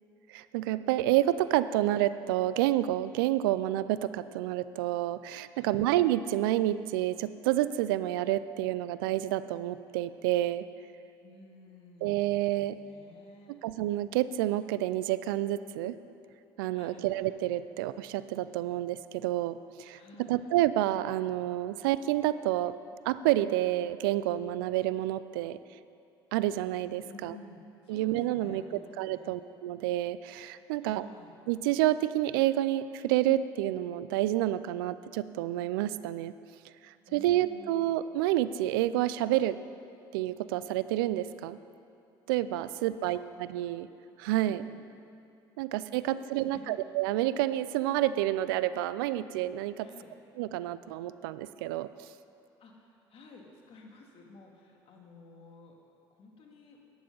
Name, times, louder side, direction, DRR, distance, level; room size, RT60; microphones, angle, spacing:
voice 1, 0.3-10.7 12.0-12.8 13.5-16.0 16.6-20.0 20.3-22.7 23.1-25.6 26.3-27.4 27.9-31.1 31.5-36.3 36.8-39.6 40.1-41.6 42.3-43.9 44.2-44.6 45.6-49.9 50.4-52.1, right 14 dB, 85° right, 15 dB, 0.4 m, -29 dB
voice 2, 5.5-5.9 11.2-13.6 16.7-17.1 19.9-20.4 27.0-29.3 30.8-31.3 37.1-37.9 42.7-42.8 43.1-43.3 44.4-44.8 46.0-46.8 49.8-50.1 52.6-55.7 56.1-56.8, left 3 dB, 55° left, 0 dB, 2.2 m, -53 dB
11.5 x 9.9 x 5.4 m, 2.7 s
hypercardioid pair, 65°, 11 cm